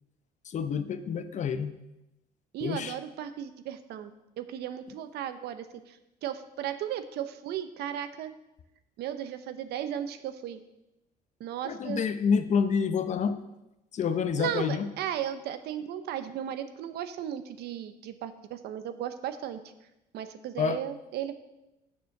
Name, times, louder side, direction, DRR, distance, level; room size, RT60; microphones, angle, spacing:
voice 1, 0.5-1.7 2.6-2.9 11.6-13.4 13.9-14.9 20.6-20.8, left 6 dB, 45° left, 11 dB, 0.7 m, -28 dB
voice 2, 2.5-4.1 4.4-6.0 6.2-8.3 9.0-10.6 11.4-12.0 14.4-19.6 20.1-21.3, right 10 dB, 75° right, 11 dB, 0.8 m, -35 dB
6.9 x 6.8 x 6.4 m, 0.93 s
cardioid pair, 110°, 17 cm